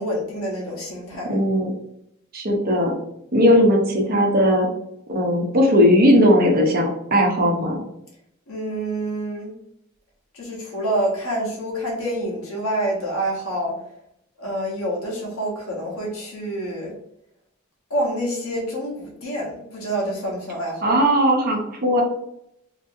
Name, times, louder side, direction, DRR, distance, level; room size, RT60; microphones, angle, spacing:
voice 1, 0.0-1.4 8.5-9.5 10.3-13.8 14.4-16.9 17.9-21.0, right 1 dB, 85° left, -3 dB, 1.1 m, -27 dB
voice 2, 1.2-1.7 2.3-2.9 3.3-4.7 5.1-7.8 20.8-22.0, equal, 45° right, 1 dB, 0.7 m, -18 dB
2.9 x 2.7 x 2.6 m, 0.78 s
head